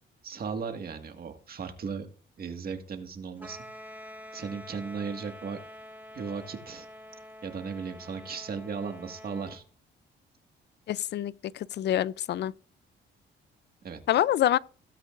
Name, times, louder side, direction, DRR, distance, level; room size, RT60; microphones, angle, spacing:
voice 1, 0.2-2.1 2.4-3.6 4.3-5.6 6.1-6.9 7.4-9.6 13.8-14.0, right 5 dB, 50° right, 1.8 m, -36 dB
sound 1, 3.4-9.6, equal, 10° right, 1.6 m, -47 dB
voice 2, 10.9-12.5 14.1-14.6, left 12 dB, 60° left, 0.4 m, -26 dB
16.5 x 8.0 x 2.5 m
cardioid pair, 90°, 20 cm